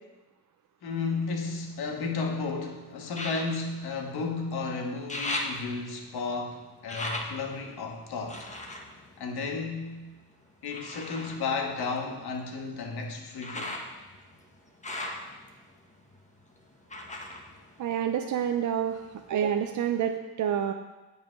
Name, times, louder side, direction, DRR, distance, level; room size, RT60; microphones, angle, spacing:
voice 1, 0.8-8.5 9.2-10.1 10.6-13.8, left 4 dB, 60° left, 2 dB, 1.6 m, -33 dB
sound 1, 0.9-2.3 3.1-4.6 4.9-10.0 10.7-18.5 18.8-19.7 20.1-20.2, left 1 dB, 15° left, 1.2 m, -40 dB
voice 2, 17.8-19.0 19.3-20.7, right 9 dB, 45° right, 6 dB, 0.5 m, -28 dB
8.8 x 5.6 x 5.2 m, 1.2 s
cardioid pair, 90°, 43 cm